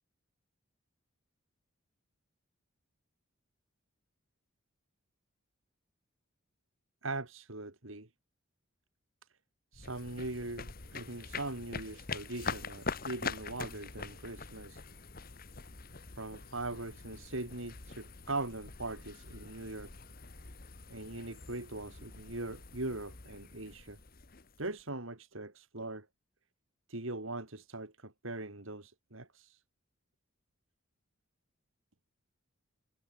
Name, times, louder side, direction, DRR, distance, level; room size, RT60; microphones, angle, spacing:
voice 1, 7.0-8.1 9.7-14.8 16.2-19.9 20.9-24.0 24.6-26.1 26.9-29.6, right 2 dB, 70° right, 3.1 m, -41 dB
sound 1, 9.7-24.9, left 4 dB, 45° left, 1.6 m, -44 dB
head